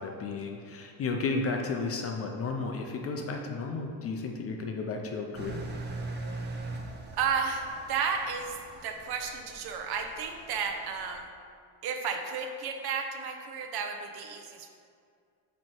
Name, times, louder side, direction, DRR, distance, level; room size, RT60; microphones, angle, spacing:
voice 1, 0.0-5.6, left 4 dB, 30° left, 3 dB, 0.4 m, -33 dB
Engine, 5.3-11.2, right 2 dB, 25° right, 0.6 m, -41 dB
voice 2, 7.1-8.6 8.8-11.3 11.8-14.7, right 6 dB, 55° right, 5 dB, 0.8 m, -33 dB
7.5 x 3.1 x 4.4 m, 2.2 s
cardioid pair, 115°, 47 cm